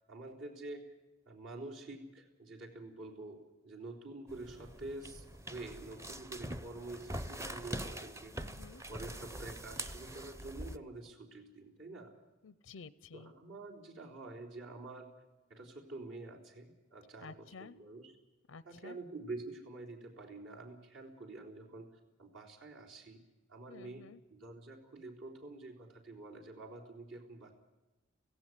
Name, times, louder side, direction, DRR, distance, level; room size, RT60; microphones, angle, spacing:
voice 1, 0.1-1.0 1.3-8.5 8.9-12.2 13.1-15.1 15.5-18.1 18.6-21.9 22.2-23.2 23.5-27.5, right 2 dB, 70° right, -1 dB, 4.0 m, -47 dB
sound 1, 4.3-10.8, right 1 dB, 15° right, 0.7 m, -44 dB
voice 2, 8.4-8.8 12.4-13.3 17.2-17.8 18.5-19.0 23.7-24.2, left 5 dB, 85° left, 18 dB, 0.6 m, -52 dB
17.5 x 16.0 x 9.7 m, 1.1 s
head